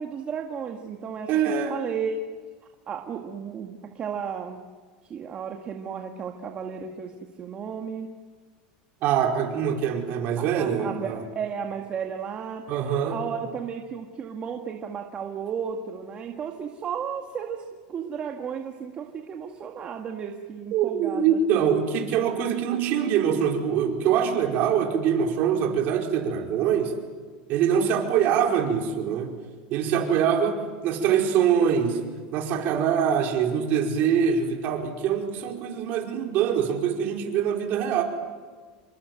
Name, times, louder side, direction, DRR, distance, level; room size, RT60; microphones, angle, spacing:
voice 1, 0.0-1.3 1.7-2.2 2.9-4.6 5.0-7.1 7.4-8.1 10.4-12.6 13.1-21.4, right 7 dB, 30° right, 2 dB, 1.9 m, -34 dB
voice 2, 1.3-1.8 9.0-11.2 12.7-13.2 20.7-26.9 27.5-29.3 29.7-30.6 30.8-32.0 32.3-38.0, right 8 dB, 50° right, 2 dB, 4.9 m, -24 dB
28.0 x 24.5 x 7.9 m, 1.5 s
supercardioid pair, 140°, 4 cm